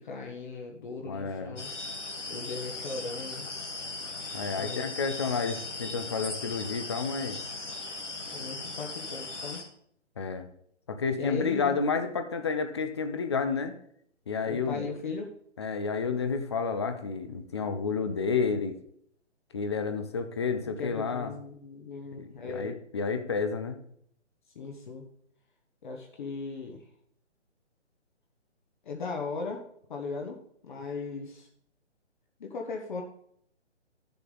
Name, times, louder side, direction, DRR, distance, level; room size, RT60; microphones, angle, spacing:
voice 1, 0.0-1.7 2.3-3.5 4.5-4.9 8.3-9.6 11.2-11.8 14.4-15.3 20.6-22.7 24.5-25.0 25.8-26.8 28.8-29.6 29.9-30.4 30.6-31.5 32.4-33.0, left 4 dB, 45° left, 2 dB, 1.1 m, -37 dB
voice 2, 1.1-1.6 4.3-7.4 10.2-10.5 10.9-13.7 14.3-14.8 15.6-18.7 19.5-21.3 22.1-23.8, left 5 dB, 25° left, 8 dB, 0.5 m, -30 dB
sound 1, 1.6-9.6, left 3 dB, 85° left, 2.1 m, -38 dB
11.5 x 6.8 x 3.8 m, 0.68 s
figure-of-eight pair, 140°, 35 cm